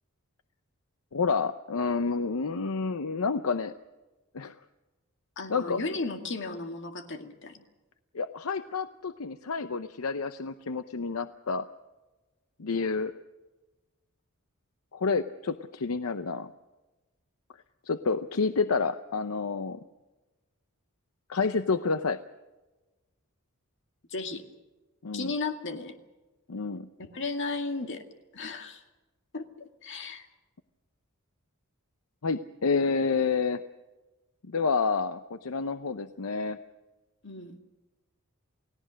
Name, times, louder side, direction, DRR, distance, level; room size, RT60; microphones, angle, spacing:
voice 1, 1.1-3.8 4.3-4.5 5.5-5.8 8.1-11.7 12.6-13.1 14.9-16.5 17.9-19.8 21.3-22.2 25.0-25.3 26.5-26.9 32.2-33.6 34.4-36.6, left 4 dB, 80° left, 11 dB, 0.7 m, -29 dB
voice 2, 5.4-7.6 24.1-24.4 25.1-25.9 27.0-28.0 28.3-28.8 29.3-30.3 37.2-37.6, left 3 dB, 60° left, 6 dB, 2.1 m, -35 dB
29.0 x 17.0 x 6.4 m, 1.2 s
head